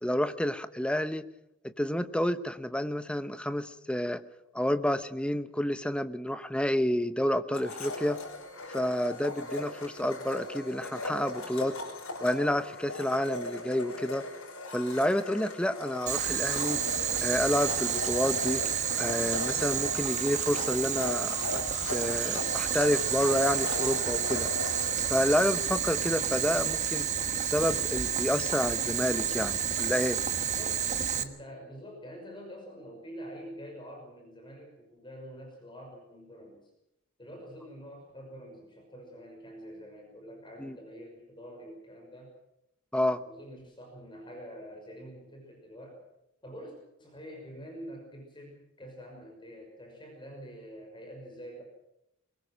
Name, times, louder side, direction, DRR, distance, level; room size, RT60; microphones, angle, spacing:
voice 1, 0.0-1.3 1.6-4.2 4.5-8.2 8.7-11.8 12.2-14.2 14.7-16.8 17.2-18.6 19.0-21.6 21.9-24.5 25.1-27.1 27.4-30.2 40.6-40.8 42.9-43.2, left 1 dB, 5° left, 11 dB, 0.9 m, -29 dB
Domestic sounds home sounds, 7.5-26.3, left 2 dB, 85° left, 5.6 m, -38 dB
Boiling, 16.1-31.2, right 8 dB, 35° right, 1.3 m, -30 dB
voice 2, 30.4-36.7 37.2-42.3 43.2-46.0 46.4-51.6, equal, 25° left, 1 dB, 5.9 m, -46 dB
22.5 x 20.5 x 6.4 m, 0.83 s
head